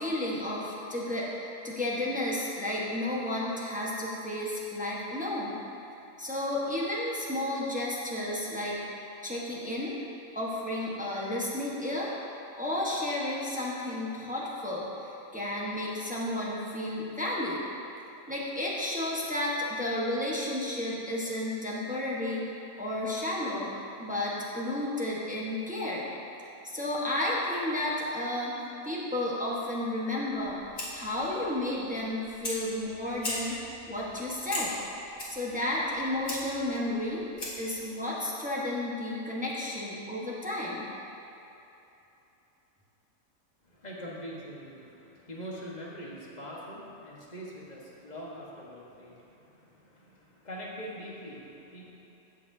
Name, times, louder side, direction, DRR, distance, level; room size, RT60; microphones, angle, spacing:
voice 1, 0.0-5.6 6.2-8.8 9.2-10.0 10.3-12.1 12.6-17.6 18.3-22.5 22.8-23.7 24.0-26.1 26.6-28.6 28.8-30.6 30.9-34.7 35.3-37.2 37.6-40.9, left 1 dB, 5° right, -6 dB, 1.0 m, -32 dB
Fire, 30.3-37.8, left 1 dB, 55° left, 1.9 m, -40 dB
voice 2, 43.6-52.0, equal, 35° left, -5 dB, 1.4 m, -43 dB
15.5 x 6.0 x 2.7 m, 2.9 s
omnidirectional pair, 1.4 m